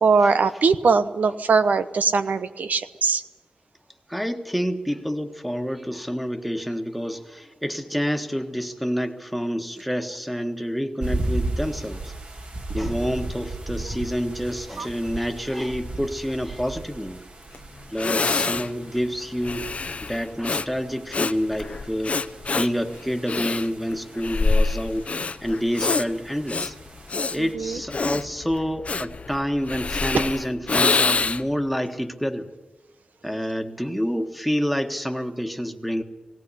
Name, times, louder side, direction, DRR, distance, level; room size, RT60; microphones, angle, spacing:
voice 1, 0.0-3.2 14.8-14.9 27.4-27.8 30.1-30.3, right 4 dB, 85° right, 10 dB, 1.0 m, -21 dB
voice 2, 4.1-12.1 12.7-17.2 17.9-19.7 20.0-22.2 22.5-25.1 25.4-26.7 27.3-32.5 33.2-36.0, equal, ahead, 7 dB, 1.6 m, -28 dB
sound 1, 11.0-27.5, right 2 dB, 50° right, 2.2 m, -36 dB
Breathing, 17.5-17.6 18.0-31.6, left 4 dB, 50° left, 0.7 m, -26 dB
19.0 x 17.0 x 10.0 m, 1.3 s
wide cardioid pair, 85°, 3 cm